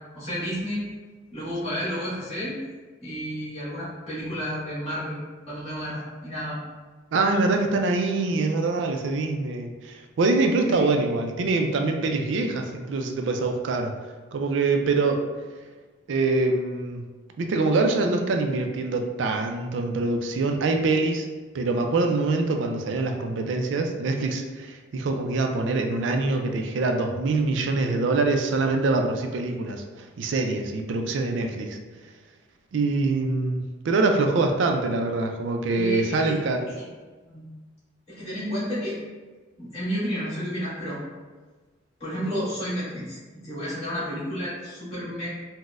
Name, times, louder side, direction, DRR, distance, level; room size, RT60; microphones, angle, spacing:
voice 1, 0.1-0.9 1.3-2.5 3.0-5.2 5.5-6.6 10.6-10.8 35.7-36.4 36.8-36.9 37.2-37.5 38.1-39.0 39.6-41.0 42.0-45.3, equal, 30° left, -11 dB, 1.4 m, -31 dB
voice 2, 7.1-14.0 14.3-15.3 16.1-17.0 17.4-21.3 21.5-31.8 32.7-36.6, right 3 dB, 65° right, 4 dB, 0.3 m, -24 dB
3.9 x 2.1 x 2.4 m, 1.3 s
head